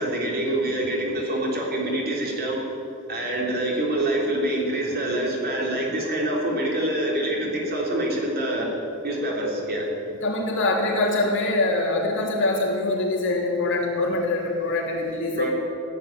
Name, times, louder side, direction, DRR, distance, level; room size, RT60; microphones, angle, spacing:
voice 1, 0.0-2.6 3.1-8.7 9.0-9.9 15.4-15.5, right 1 dB, 45° right, -2 dB, 3.4 m, -26 dB
voice 2, 10.2-15.5, left 2 dB, 60° left, -2 dB, 3.2 m, -24 dB
16.0 x 8.8 x 9.4 m, 2.7 s
head